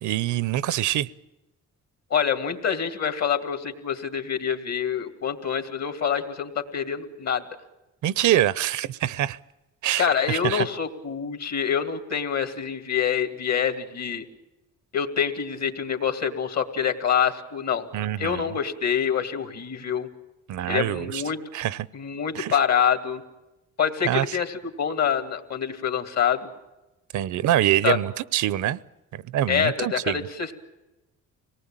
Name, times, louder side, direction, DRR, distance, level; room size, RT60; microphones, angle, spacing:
voice 1, 0.0-1.1 8.0-9.4 9.8-10.7 17.9-18.6 20.5-21.2 21.5-21.9 22.3-22.6 24.1-24.4 27.1-28.8 29.1-30.3, right 12 dB, 75° right, 20 dB, 0.7 m, -25 dB
voice 2, 2.1-7.4 10.0-14.2 14.9-17.9 18.2-20.1 20.7-21.4 21.9-23.2 23.8-26.5 27.8-28.0 29.5-30.5, left 8 dB, 60° left, 8 dB, 2.6 m, -26 dB
25.5 x 19.0 x 8.9 m, 1.0 s
cardioid pair, 90°, 30 cm